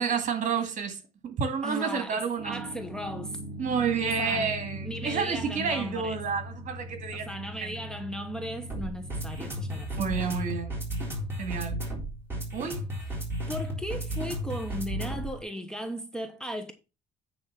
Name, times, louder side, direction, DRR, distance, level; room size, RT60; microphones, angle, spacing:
voice 1, 0.0-2.6 3.6-7.8 10.0-10.8 11.4-11.8 12.5-12.8, right 6 dB, 50° right, 2.2 m, -30 dB
voice 2, 1.6-3.4 4.0-6.2 7.1-9.9 13.5-16.7, equal, 5° left, 1.1 m, -36 dB
sound 1, 2.4-15.4, equal, 15° right, 3.9 m, -36 dB
9.6 x 3.7 x 5.8 m
cardioid pair, 110°, 17 cm